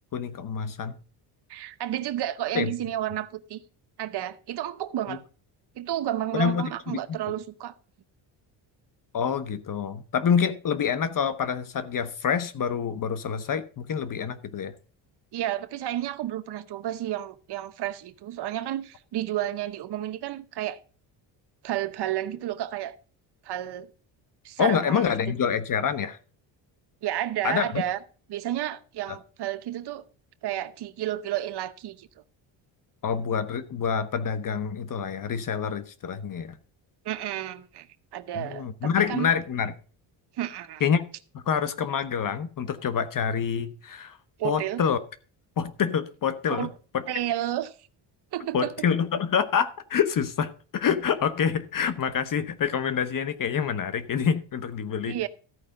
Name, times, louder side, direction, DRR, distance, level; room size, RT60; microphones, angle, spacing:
voice 1, 0.1-0.9 2.5-2.7 5.1-5.2 6.3-7.0 9.1-14.7 24.6-26.2 27.4-27.8 33.0-36.6 38.3-39.7 40.8-41.0 41.5-44.2 44.4-45.0 45.6-46.7 46.9-47.0 48.5-55.2, left 7 dB, 45° left, 1.0 m, -27 dB
voice 2, 1.5-3.6 4.0-5.2 5.8-7.7 15.3-20.8 21.6-23.0 23.4-23.9 24.4-25.0 27.0-28.0 28.3-30.0 30.4-32.1 37.0-37.9 38.1-39.3 40.4-40.8 44.4-44.8 46.5-46.7 47.1-47.7 48.3-48.9 55.0-55.3, right 12 dB, 55° right, 1.0 m, -31 dB
14.0 x 4.9 x 6.5 m
cardioid pair, 115°, 47 cm